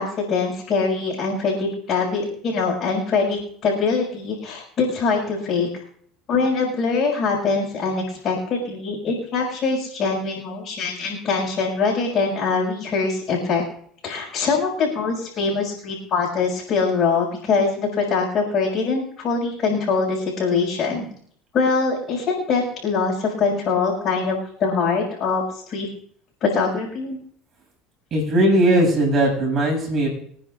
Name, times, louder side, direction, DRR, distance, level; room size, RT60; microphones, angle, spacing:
voice 1, 0.0-5.7 6.3-13.6 14.0-21.1 21.5-25.9 26.4-27.2, left 4 dB, 45° left, -4 dB, 5.5 m, -23 dB
voice 2, 28.1-30.1, right 1 dB, 45° right, 1 dB, 7.1 m, -18 dB
25.0 x 10.0 x 2.5 m, 0.64 s
supercardioid pair, 85°, 0 cm